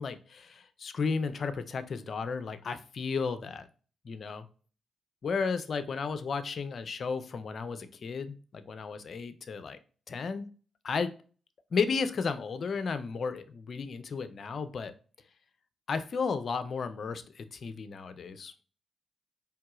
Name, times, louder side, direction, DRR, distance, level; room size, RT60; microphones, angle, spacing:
voice 1, 0.0-3.7 4.0-4.4 5.2-9.8 10.1-10.5 10.8-11.1 11.7-14.9 15.9-18.5, left 5 dB, 60° left, 12 dB, 0.5 m, -33 dB
4.6 x 3.3 x 2.3 m, 0.38 s
hypercardioid pair, 40°, 0 cm